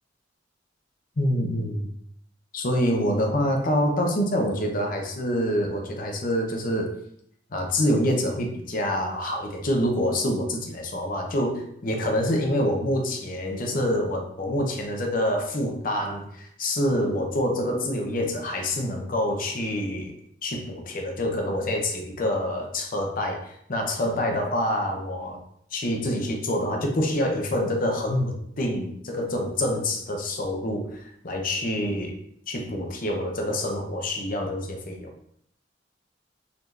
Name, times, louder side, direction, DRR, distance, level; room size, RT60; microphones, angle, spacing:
voice 1, 1.2-1.9 2.5-7.0 7.5-20.1 20.4-25.4 25.7-32.2 32.5-35.1, left 1 dB, 50° left, 2 dB, 0.7 m, -26 dB
4.1 x 2.8 x 3.2 m, 0.70 s
head